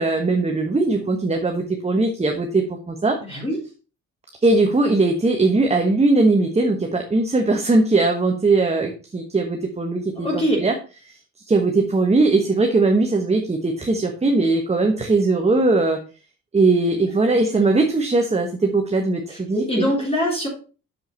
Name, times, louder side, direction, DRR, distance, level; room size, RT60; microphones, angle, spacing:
voice 1, 0.0-3.2 4.4-10.3 10.6-10.7 11.5-16.0 16.5-19.9, right 3 dB, 20° right, 3 dB, 1.2 m, -19 dB
voice 2, 3.3-3.6 10.2-10.6 17.3-17.6 19.3-20.5, equal, 20° left, -3 dB, 3.6 m, -24 dB
7.1 x 5.6 x 4.5 m, 0.35 s
cardioid pair, 90°, 30 cm